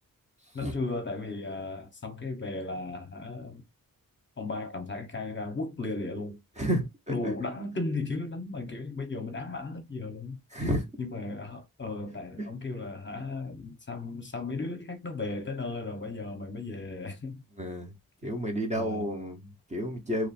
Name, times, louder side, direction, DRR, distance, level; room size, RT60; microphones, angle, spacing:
voice 1, 0.5-3.6 4.4-6.4 7.1-10.4 11.0-17.4 18.7-19.1, left 3 dB, 35° left, 0.8 m, -35 dB
voice 2, 6.6-7.3 10.5-10.9 12.4-12.5 17.6-17.9 18.2-20.3, equal, 20° right, 0.7 m, -31 dB
3.0 x 2.5 x 4.1 m
wide cardioid pair, 150°, 35 cm